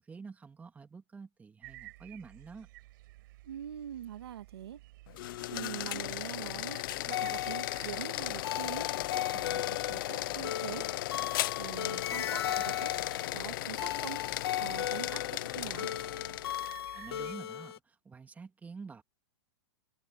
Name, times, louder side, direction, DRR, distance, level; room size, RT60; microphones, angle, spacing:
voice 1, 0.0-2.7 16.9-19.0, right 5 dB, 10° right, 3.0 m, -48 dB
sound 1, 1.6-17.4, right 19 dB, 55° right, 6.1 m, -55 dB
voice 2, 3.4-4.8 5.5-6.8 7.1-8.9 9.3-10.9 11.6-12.9 13.3-14.2 14.6-15.9, right 10 dB, 80° right, 2.4 m, -43 dB
sound 2, 5.1-16.8, left 17 dB, 55° left, 0.8 m, -36 dB
sound 3, 7.1-17.8, left 11 dB, 75° left, 2.4 m, -37 dB
hypercardioid pair, 140°, 13 cm